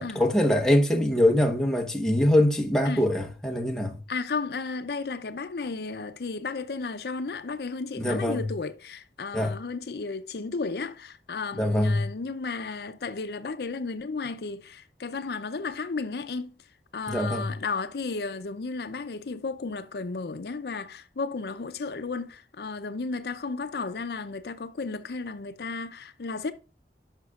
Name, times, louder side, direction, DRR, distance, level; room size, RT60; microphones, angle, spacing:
voice 1, 0.0-4.0 8.0-8.5 9.3-9.6 11.5-12.1 17.1-17.5, left 1 dB, 5° left, 1.0 m, -23 dB
voice 2, 4.1-16.6 16.9-26.5, left 4 dB, 65° left, 0.5 m, -33 dB
11.5 x 5.8 x 2.4 m
head